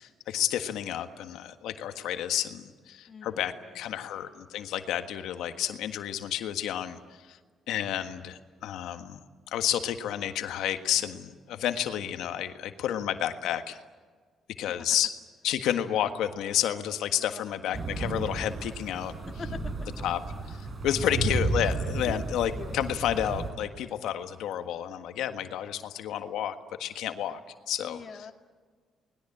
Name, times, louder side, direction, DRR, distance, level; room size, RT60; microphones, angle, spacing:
voice 1, 0.0-7.0 7.3-7.4 7.7-9.2 9.5-13.8 14.6-15.1 15.4-19.1 20.0-20.2 20.5-27.4 27.7-28.0, left 10 dB, 85° left, 8 dB, 1.6 m, -30 dB
voice 2, 3.1-4.1 14.7-14.9 17.2-18.0 19.4-19.9 20.9-21.3 22.0-22.3 22.5-22.8 27.8-28.3, left 5 dB, 40° left, 5 dB, 1.9 m, -44 dB
sound 1, 17.7-23.5, right 3 dB, 40° right, 5.6 m, -33 dB
30.0 x 20.5 x 8.6 m, 1.5 s
cardioid pair, 90°, 0 cm